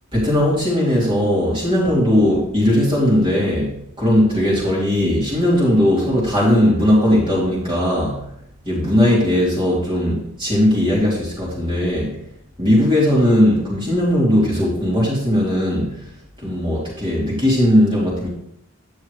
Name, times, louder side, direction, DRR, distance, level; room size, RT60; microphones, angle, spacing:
voice 1, 0.1-8.3 8.6-12.1 12.6-16.0 16.4-18.3, left 1 dB, 20° right, -7 dB, 3.0 m, -18 dB
11.0 x 8.6 x 3.3 m, 0.75 s
head